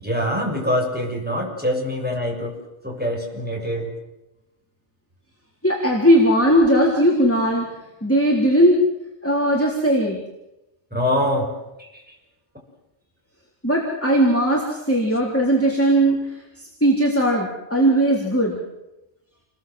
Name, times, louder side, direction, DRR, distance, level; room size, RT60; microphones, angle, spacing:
voice 1, 0.0-3.9 10.9-11.5 11.8-12.1, equal, 10° right, -1 dB, 6.9 m, -24 dB
voice 2, 5.6-7.7 8.0-8.8 9.2-10.2 13.6-18.6, right 1 dB, 10° left, -3 dB, 3.8 m, -18 dB
29.0 x 21.0 x 7.8 m, 0.95 s
omnidirectional pair, 1.2 m